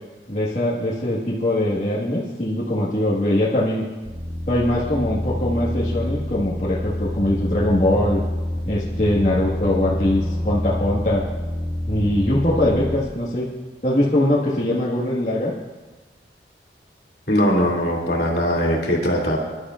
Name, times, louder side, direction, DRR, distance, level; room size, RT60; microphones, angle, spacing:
voice 1, 0.3-3.8 4.5-8.2 8.6-11.2 11.9-13.5 13.8-15.5, left 1 dB, 40° left, -7 dB, 1.6 m, -22 dB
sound 1, 4.0-13.0, left 1 dB, 25° right, 1.7 m, -27 dB
voice 2, 17.3-19.4, equal, 65° left, -2 dB, 2.7 m, -20 dB
23.5 x 11.5 x 2.5 m, 1.2 s
head